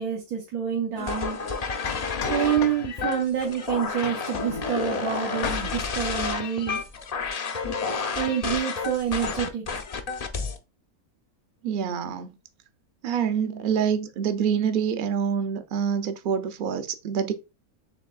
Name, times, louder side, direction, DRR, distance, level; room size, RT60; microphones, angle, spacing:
voice 1, 0.0-1.4 2.2-6.8 8.1-9.6, right 9 dB, 85° right, 1.4 m, -27 dB
sound 1, 1.0-10.6, left 4 dB, 85° left, 0.3 m, -30 dB
sound 2, 1.1-1.2 1.9-3.2 4.0-4.9 5.3-5.9, left 8 dB, 65° left, 0.7 m, -37 dB
voice 2, 11.6-12.4 13.0-17.3, right 7 dB, 70° right, 0.5 m, -26 dB
6.9 x 3.2 x 2.3 m
omnidirectional pair, 1.5 m